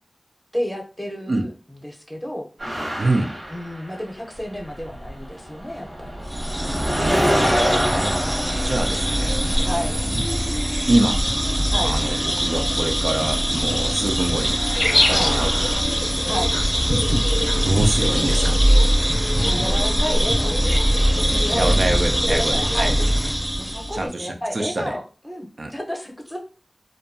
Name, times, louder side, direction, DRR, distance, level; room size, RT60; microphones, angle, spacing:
voice 1, 0.5-1.5 1.8-2.5 3.5-6.3 9.6-10.0 11.7-11.9 15.1-15.3 16.2-16.5 19.4-20.8 21.3-21.9 22.3-23.0 23.6-26.4, equal, 10° left, 2 dB, 0.6 m, -30 dB
sound 1, 2.6-4.4 4.7-15.8, equal, 85° right, 1.0 m, -28 dB
voice 2, 3.0-3.3 7.9-9.9 10.9-11.2 11.8-14.6 15.1-15.5 17.5-18.6 21.5-22.9 23.9-25.0 25.6-25.7, right 2 dB, 70° right, 3 dB, 0.4 m, -25 dB
sound 2, 6.3-24.0, equal, 25° right, 0.6 m, -22 dB
sound 3, 14.7-23.3, left 1 dB, 50° left, 0.5 m, -28 dB
2.6 x 2.2 x 2.5 m, 0.35 s
wide cardioid pair, 55°, 0 cm